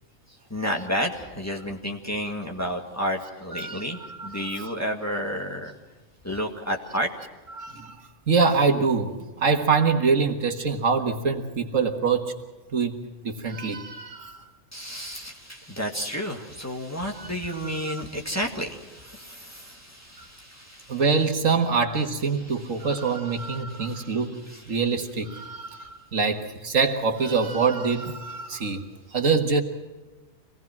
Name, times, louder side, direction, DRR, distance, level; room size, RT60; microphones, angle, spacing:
voice 1, 0.5-5.7 6.2-7.1 14.7-21.0 23.9-24.2 24.5-24.6, equal, 10° left, 1 dB, 1.9 m, -31 dB
voice 2, 3.5-4.8 7.6-8.0 8.3-12.3 12.7-13.0 13.2-14.4 17.1-18.0 20.2-20.3 20.9-24.3 24.7-28.8 29.1-29.6, right 5 dB, 70° right, 5 dB, 2.0 m, -25 dB
25.5 x 18.5 x 6.0 m, 1.2 s
omnidirectional pair, 1.4 m